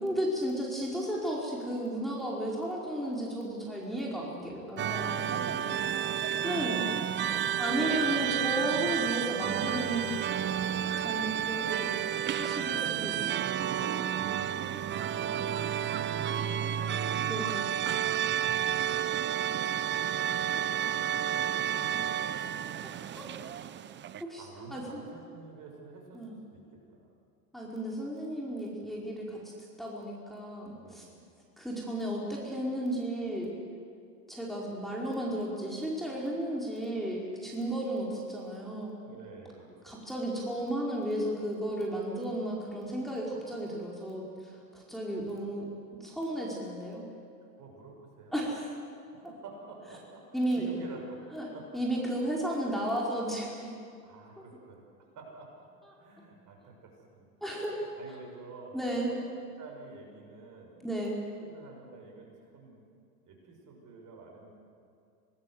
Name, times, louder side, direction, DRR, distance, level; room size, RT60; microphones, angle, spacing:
voice 1, 0.0-5.1 6.4-6.9 7.6-10.1 11.0-11.9 12.3-13.3 17.3-17.8 23.2-23.3 24.2-24.4 24.7-25.0 26.1-26.3 27.5-29.4 29.8-31.0 31.6-33.5 34.3-39.0 39.8-45.7 46.0-47.1 48.3-48.7 50.3-50.7 51.3-53.7 57.4-57.8 58.7-59.1 60.8-61.2, right 1 dB, ahead, -4 dB, 4.8 m, -33 dB
sound 1, 4.8-24.2, right 10 dB, 25° right, 0.8 m, -31 dB
voice 2, 5.0-6.1 7.7-8.1 12.9-17.0 21.6-22.5 24.1-27.1 30.7-31.3 39.0-40.1 47.6-48.4 49.1-50.3 50.5-51.2 51.5-51.8 54.0-54.8 55.1-55.5 56.0-57.3 57.7-58.8 59.1-59.2 59.6-60.8 61.4-62.8 63.2-64.5, right 3 dB, 40° right, 1 dB, 6.6 m, -50 dB
26.0 x 19.0 x 8.1 m, 2.4 s
hypercardioid pair, 90°, 47 cm